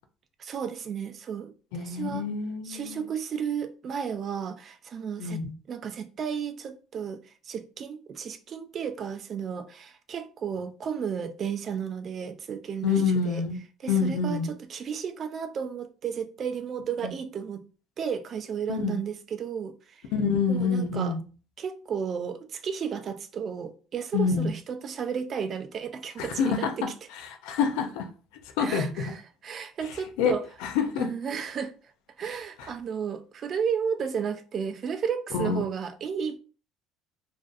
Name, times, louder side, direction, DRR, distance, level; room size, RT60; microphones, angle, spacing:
voice 1, 0.4-2.3 2.6-5.4 5.7-13.4 13.8-17.6 18.0-20.0 20.5-21.1 21.6-26.8 28.6-30.4 31.0-31.7 32.2-36.4, right 7 dB, 40° right, 0.3 m, -33 dB
voice 2, 1.7-3.0 5.2-5.5 12.8-13.6 13.9-14.5 17.0-17.1 18.7-19.0 20.1-21.2 24.1-24.5 26.2-26.7 27.4-28.1 28.6-29.0 30.2-30.3 30.6-31.1 35.3-35.6, left 5 dB, 85° left, 0.4 m, -26 dB
2.5 x 2.3 x 2.4 m
cardioid pair, 115°, 0 cm